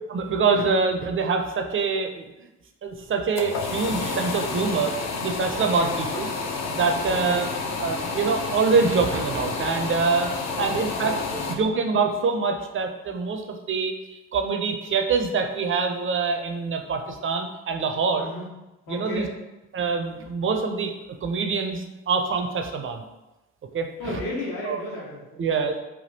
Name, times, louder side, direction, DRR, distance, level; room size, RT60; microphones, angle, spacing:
voice 1, 0.1-2.3 2.8-4.9 5.2-6.3 6.7-7.5 7.8-11.2 11.5-18.3 18.9-19.3 19.7-20.9 21.2-23.0 23.7-24.2 24.6-24.8 25.4-25.8, right 4 dB, 35° right, 5 dB, 0.5 m, -25 dB
sound 1, 3.0-11.6, left 4 dB, 45° left, 0.5 m, -30 dB
voice 2, 5.6-6.0 7.0-7.4 10.5-11.4 18.1-18.5 18.9-19.3 24.0-25.8, left 1 dB, 70° left, -5 dB, 1.1 m, -35 dB
3.4 x 2.3 x 2.7 m, 1.0 s
hypercardioid pair, 40°, 36 cm